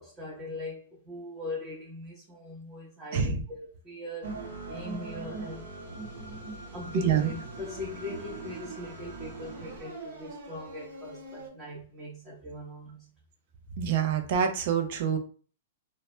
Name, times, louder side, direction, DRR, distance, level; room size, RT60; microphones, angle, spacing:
voice 1, 0.0-5.6 6.7-13.1, left 2 dB, 20° right, 0.9 m, -40 dB
sound 1, 4.2-11.5, right 3 dB, 90° right, 1.0 m, -41 dB
voice 2, 13.8-15.2, right 8 dB, 55° right, 0.5 m, -26 dB
2.1 x 2.1 x 3.0 m
hypercardioid pair, 130°, 0 cm